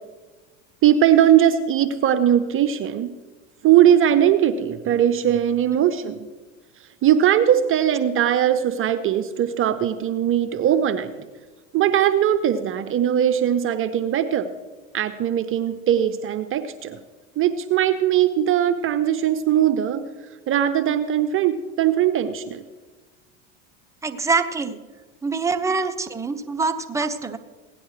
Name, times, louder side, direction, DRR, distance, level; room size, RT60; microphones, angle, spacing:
voice 1, 0.8-3.1 3.6-6.2 7.0-11.1 11.7-14.5 14.9-17.0 17.4-20.0 20.5-22.6, right 10 dB, 35° right, 10 dB, 0.7 m, -20 dB
voice 2, 24.0-24.8 25.2-27.4, right 4 dB, 10° right, 7 dB, 0.8 m, -24 dB
17.0 x 10.5 x 3.3 m, 1.3 s
hypercardioid pair, 90°, 36 cm